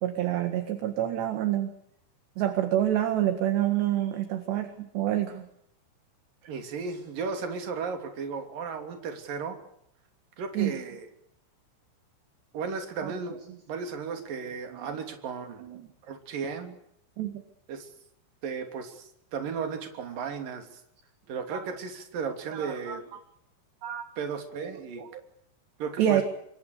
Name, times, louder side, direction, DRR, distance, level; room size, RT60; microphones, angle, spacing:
voice 1, 0.0-1.7 2.4-5.5 10.6-10.7 13.0-13.1 14.1-14.2 14.7-14.9 15.6-15.9 17.2-17.4 22.5-23.0 23.8-24.1 24.6-25.2 26.0-26.2, right 12 dB, 65° right, 8 dB, 3.7 m, -28 dB
voice 2, 6.5-9.6 10.4-11.1 12.5-13.4 13.7-15.7 16.0-16.8 17.7-17.9 18.4-20.8 21.3-23.0 24.2-25.0 25.8-26.2, right 5 dB, 45° right, 5 dB, 4.3 m, -35 dB
27.0 x 23.5 x 6.7 m, 0.73 s
omnidirectional pair, 5.9 m